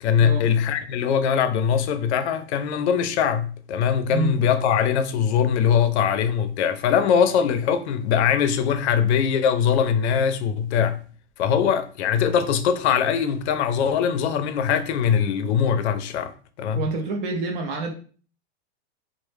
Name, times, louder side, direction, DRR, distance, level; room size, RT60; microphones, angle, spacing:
voice 1, 0.0-11.0 11.4-16.3 16.6-16.8, left 7 dB, 80° left, 0.5 m, -22 dB
voice 2, 16.7-17.9, right 3 dB, 55° right, 0.5 m, -27 dB
2.1 x 2.0 x 3.0 m
supercardioid pair, 175°, 33 cm